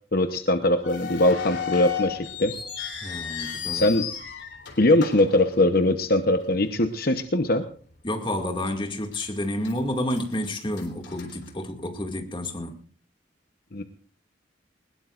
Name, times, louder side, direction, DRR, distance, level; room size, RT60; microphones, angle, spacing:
voice 1, 0.1-2.5 3.7-4.0 4.8-7.6 13.7-13.8, left 1 dB, 50° left, 0.9 m, -21 dB
sound 1, 0.8-6.2 6.5-6.6 7.3-7.5 8.0-8.1 8.7-9.3 9.6-12.1, left 8 dB, 70° left, 3.5 m, -34 dB
voice 2, 3.0-3.9 8.0-12.8, left 1 dB, 25° left, 2.2 m, -30 dB
21.0 x 20.0 x 2.5 m
head